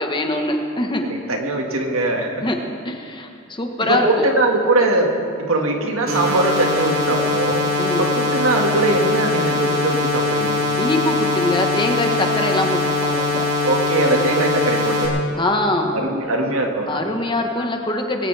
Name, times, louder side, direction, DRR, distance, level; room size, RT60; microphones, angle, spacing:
voice 1, 0.0-1.0 2.4-2.6 2.8-4.3 7.8-8.1 10.8-13.5 15.4-16.1 16.9-18.3, left 1 dB, 25° left, 3 dB, 1.2 m, -23 dB
voice 2, 1.0-2.4 3.8-5.1 5.4-7.6 8.0-10.7 13.6-15.1 15.9-17.0, right 2 dB, 90° right, 2 dB, 1.9 m, -21 dB
sound 1, 6.1-15.1, left 2 dB, 50° right, 3.4 m, -21 dB
20.5 x 17.5 x 3.4 m, 2.4 s
head